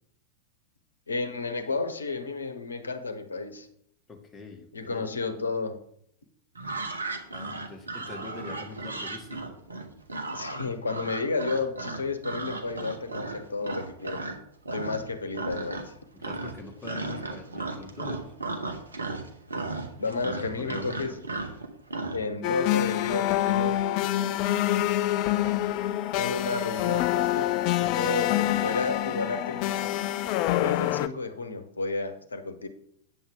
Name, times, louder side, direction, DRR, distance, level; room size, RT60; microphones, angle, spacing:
voice 1, 1.1-3.7 4.7-5.8 10.3-14.3 14.7-15.9 20.0-21.1 22.1-23.8 26.1-29.7 30.5-32.7, left 3 dB, 75° left, 9 dB, 1.0 m, -32 dB
voice 2, 4.1-5.1 7.3-9.6 16.1-18.3 20.1-21.2 21.5-21.6, left 3 dB, 15° left, 1 dB, 1.8 m, -44 dB
sound 1, 6.5-14.4 14.6-15.1 15.3-22.2, right 3 dB, 75° right, 1.1 m, -35 dB
sound 2, 22.4-31.1, left 14 dB, 45° left, 0.4 m, -26 dB
8.9 x 7.1 x 3.8 m, 0.69 s
figure-of-eight pair, 90°, 0 cm